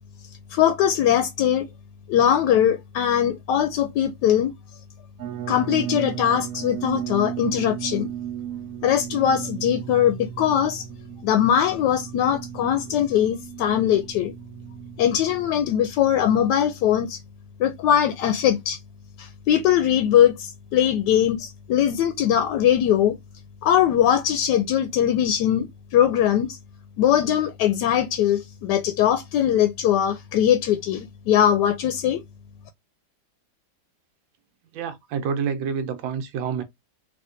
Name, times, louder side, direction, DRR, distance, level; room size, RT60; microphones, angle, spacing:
voice 1, 0.5-1.7 2.1-4.5 5.5-8.1 8.8-10.9 11.2-14.3 15.0-17.2 17.6-18.8 19.2-23.1 23.6-26.6 27.0-32.2, left 10 dB, 75° left, 1.1 m, -21 dB
sound 1, 5.2-16.1, right 11 dB, 65° right, 0.9 m, -35 dB
voice 2, 34.7-36.6, right 6 dB, 90° right, 1.5 m, -28 dB
3.5 x 2.8 x 2.5 m
omnidirectional pair, 2.1 m